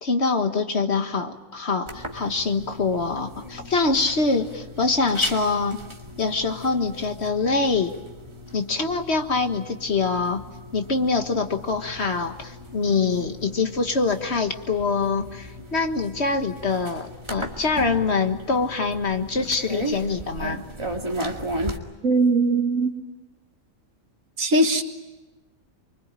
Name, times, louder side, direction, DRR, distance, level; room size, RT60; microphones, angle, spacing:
voice 1, 0.0-5.8 6.2-7.9 8.5-10.4 10.7-20.6, left 4 dB, 55° left, 6 dB, 1.8 m, -24 dB
sound 1, 1.9-21.8, equal, 20° right, 2.2 m, -36 dB
voice 2, 22.0-22.9 24.4-24.8, right 2 dB, 80° right, 6 dB, 2.1 m, -20 dB
24.5 x 24.5 x 8.9 m, 1.1 s
omnidirectional pair, 1.4 m